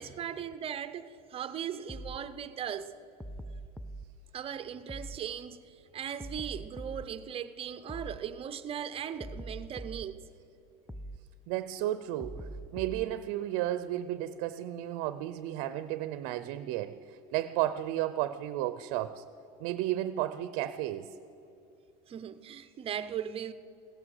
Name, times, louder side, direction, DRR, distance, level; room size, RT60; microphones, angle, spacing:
voice 1, 0.0-2.9 4.3-10.3 22.1-23.5, right 9 dB, 30° right, 0.7 m, -38 dB
sound 1, 1.9-2.2 3.2-4.0 4.9-5.2 6.2-7.1 7.9-8.2 9.2-10.1 10.9-11.2 12.2-13.1, right 1 dB, ahead, 0.3 m, -42 dB
voice 2, 11.5-19.2 19.6-21.1, right 13 dB, 65° right, 0.6 m, -33 dB
16.5 x 11.0 x 6.6 m
supercardioid pair, 130°, 18 cm